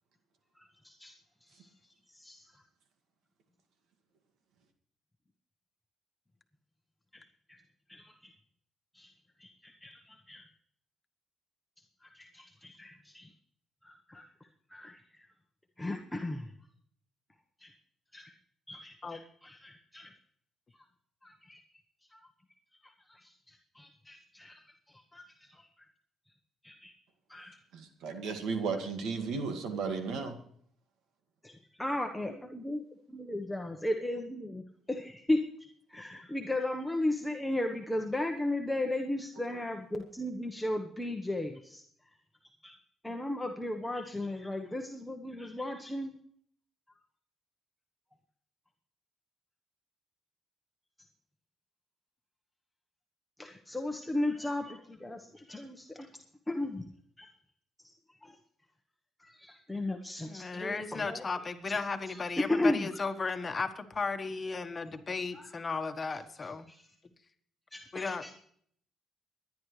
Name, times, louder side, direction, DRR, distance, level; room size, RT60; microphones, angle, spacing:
voice 1, 0.6-1.1 1.5-1.7 2.1-2.5 7.1-7.2 7.5-7.6 7.9-8.3 8.9-9.1 9.4-10.4 12.0-13.3 13.8-14.3 14.7-15.2 15.8-16.5 17.6-17.7 18.1-18.3 18.7-20.1 20.7-20.8 21.2-21.6 22.1-22.2 22.8-24.6 25.1-25.7 26.6-26.9 27.3-27.6 31.4-32.8 33.1-35.4 35.9-41.8 42.6-42.7 43.0-46.1 53.4-56.1 56.5-56.8 57.2-57.3 58.2-58.4 59.2-61.2 61.7-61.8 62.1-63.0 65.3-65.7 66.7-66.9 67.7-68.4, left 1 dB, 10° left, 2 dB, 1.1 m, -36 dB
voice 2, 27.7-30.4, right 5 dB, 80° right, 6 dB, 2.0 m, -34 dB
voice 3, 60.3-66.7 67.9-68.2, left 4 dB, 35° left, 7 dB, 1.4 m, -35 dB
24.5 x 10.5 x 3.3 m, 0.62 s
cardioid pair, 90°, 0 cm